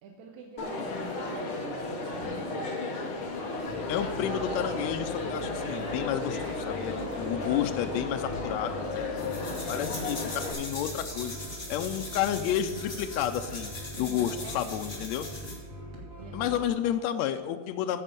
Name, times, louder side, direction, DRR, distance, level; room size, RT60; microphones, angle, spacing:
voice 1, 0.0-2.8 8.8-9.7 14.0-14.6 16.2-16.6 16.8-17.0, right 5 dB, 70° right, 2 dB, 2.1 m, -47 dB
Crowd, 0.6-10.5, left 2 dB, 55° left, 1.7 m, -34 dB
sound 1, 3.6-16.7, equal, 30° right, 1.7 m, -43 dB
voice 2, 3.9-11.3 11.7-15.3 16.3-18.0, left 10 dB, 90° left, 8 dB, 1.6 m, -31 dB
sound 2, 9.2-15.6, left 2 dB, 25° left, 1.6 m, -41 dB
15.0 x 5.4 x 5.2 m, 1.5 s
omnidirectional pair, 3.7 m